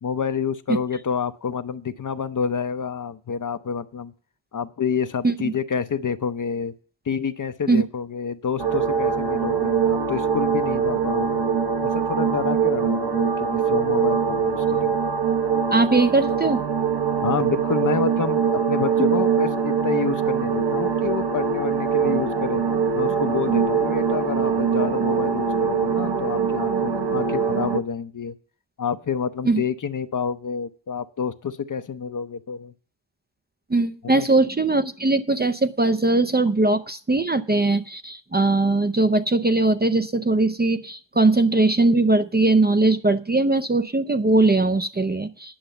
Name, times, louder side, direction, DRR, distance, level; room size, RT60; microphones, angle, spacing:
voice 1, 0.0-4.1 4.5-6.7 7.1-11.4 11.8-14.9 17.2-22.6 22.9-28.3 28.8-32.7 34.0-34.3, left 6 dB, 45° left, 11 dB, 0.6 m, -28 dB
sound 1, 8.6-27.8, right 6 dB, 55° right, 1.0 m, -23 dB
voice 2, 15.7-16.6 29.4-29.6 33.7-45.6, right 2 dB, 20° right, 10 dB, 0.5 m, -20 dB
10.0 x 6.8 x 7.7 m, 0.41 s
wide cardioid pair, 150°, 46 cm